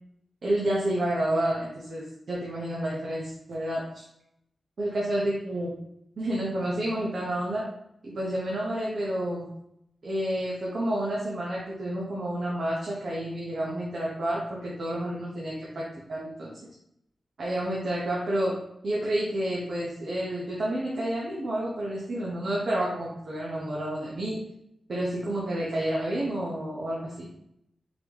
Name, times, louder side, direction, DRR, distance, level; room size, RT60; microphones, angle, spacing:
voice 1, 0.4-4.1 4.8-5.7 6.2-7.7 8.0-9.5 10.0-16.5 17.4-18.6 18.8-24.4 24.9-27.3, right 1 dB, 60° right, -5 dB, 0.9 m, -30 dB
4.0 x 3.3 x 3.0 m, 0.77 s
wide cardioid pair, 120°, 0 cm